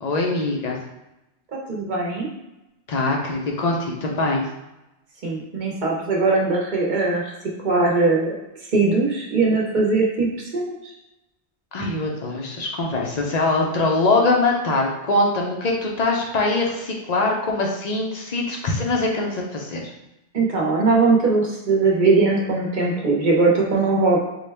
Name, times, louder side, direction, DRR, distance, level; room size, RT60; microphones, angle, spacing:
voice 1, 0.0-0.8 2.9-4.5 11.7-19.8, left 2 dB, 45° left, 0 dB, 0.6 m, -22 dB
voice 2, 1.7-2.3 5.2-7.3 7.6-8.3 8.7-10.7 20.3-24.2, right 3 dB, 50° right, -2 dB, 0.8 m, -20 dB
3.9 x 2.2 x 3.3 m, 0.94 s
omnidirectional pair, 1.2 m